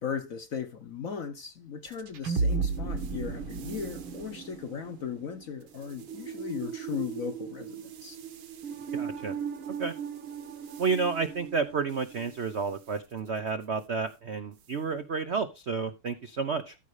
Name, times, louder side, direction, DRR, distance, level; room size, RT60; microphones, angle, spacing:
voice 1, 0.0-8.2, left 7 dB, 55° left, 0.9 m, -37 dB
sound 1, 1.9-12.4, right 5 dB, 70° right, 2.0 m, -36 dB
voice 2, 8.9-9.3 9.8-9.9 10.8-16.7, right 5 dB, 85° right, 0.6 m, -31 dB
14.0 x 5.4 x 4.8 m
omnidirectional pair, 2.4 m